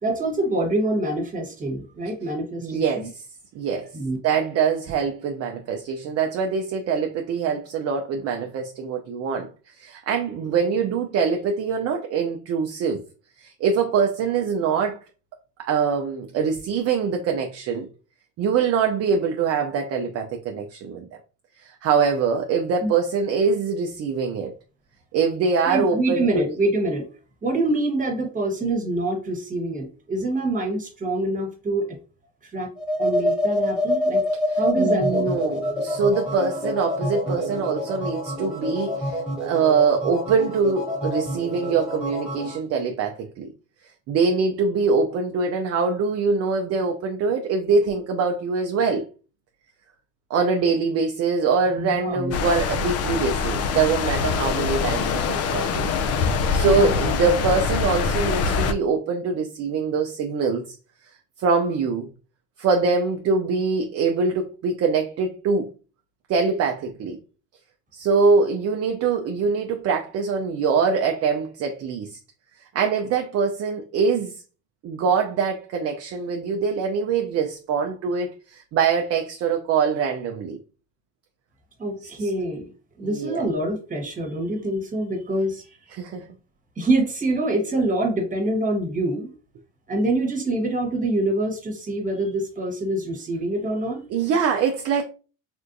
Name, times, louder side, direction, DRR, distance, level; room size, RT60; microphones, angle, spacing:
voice 1, 0.0-3.1 3.9-4.2 22.8-22.9 25.7-27.1 27.4-31.9 32.5-32.7 33.0-34.2 34.6-35.3 51.7-52.3 56.6-56.9 81.8-82.7 83.0-86.0 86.8-89.3 89.9-94.0, right 2 dB, 25° right, 1.2 m, -25 dB
voice 2, 2.6-3.2 3.5-3.9 4.2-13.0 13.4-15.0 15.6-17.9 18.4-21.0 21.6-24.5 25.1-26.4 34.5-43.5 44.1-49.1 50.3-55.9 56.3-60.8 61.4-62.1 62.6-65.7 66.3-67.2 67.9-72.2 72.7-74.4 74.8-80.6 83.0-83.4 85.9-86.3 94.1-95.0, right 5 dB, 45° right, 0.5 m, -23 dB
sound 1, 32.8-42.6, left 1 dB, 5° right, 1.2 m, -26 dB
sound 2, 52.3-58.7, left 5 dB, 45° left, 0.5 m, -24 dB
3.5 x 2.5 x 2.6 m
supercardioid pair, 90°, 35 cm